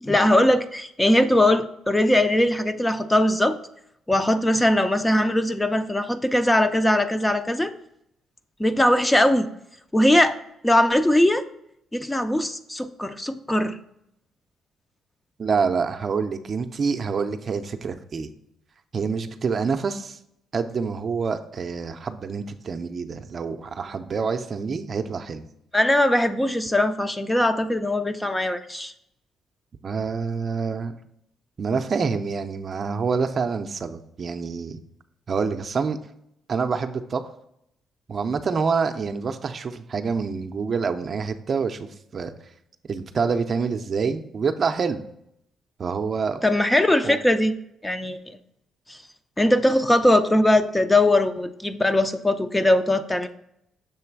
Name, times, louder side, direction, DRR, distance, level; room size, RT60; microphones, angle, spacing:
voice 1, 0.0-3.6 4.1-7.7 8.6-9.5 9.9-10.4 10.6-11.4 11.9-13.8 25.7-28.9 46.4-47.5 47.8-48.2 48.9-49.0 49.4-53.3, left 1 dB, 10° left, 9 dB, 0.5 m, -20 dB
voice 2, 15.4-18.3 18.9-20.2 20.5-25.5 29.8-30.9 31.6-34.8 35.3-36.0 36.5-37.2 38.1-42.3 42.9-45.0 45.8-46.4 47.0-47.2, right 5 dB, 45° right, 8 dB, 0.5 m, -27 dB
6.8 x 3.2 x 4.5 m, 0.76 s
cardioid pair, 90°, 0 cm